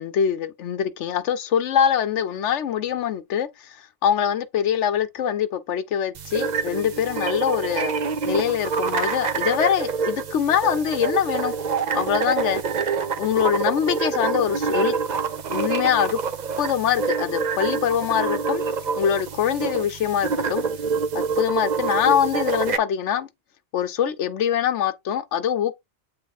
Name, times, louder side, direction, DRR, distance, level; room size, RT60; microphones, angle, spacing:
voice 1, 0.0-3.8 4.0-7.9 8.3-11.5 11.9-12.6 13.2-15.0 15.5-16.2 16.6-18.6 19.0-20.6 21.1-23.3 23.7-25.7, left 9 dB, 75° left, 1.0 m, -23 dB
sound 1, 6.1-22.8, right 5 dB, 45° right, 0.6 m, -26 dB
8.3 x 3.5 x 4.1 m
omnidirectional pair, 1.2 m